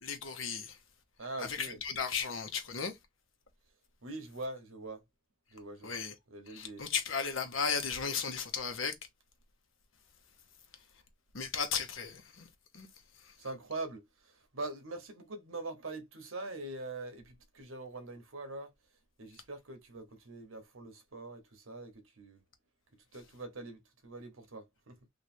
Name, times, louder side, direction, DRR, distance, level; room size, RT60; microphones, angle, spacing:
voice 1, 0.0-0.8 1.4-3.0 5.8-6.1 6.5-8.9 11.3-12.4 12.7-12.9, left 6 dB, 70° left, 1.0 m, -35 dB
voice 2, 1.2-1.8 4.0-5.0 5.5-6.0 6.3-6.9 13.4-18.7 19.2-22.4 23.1-25.0, right 2 dB, 80° right, 1.1 m, -43 dB
3.2 x 2.6 x 4.3 m
head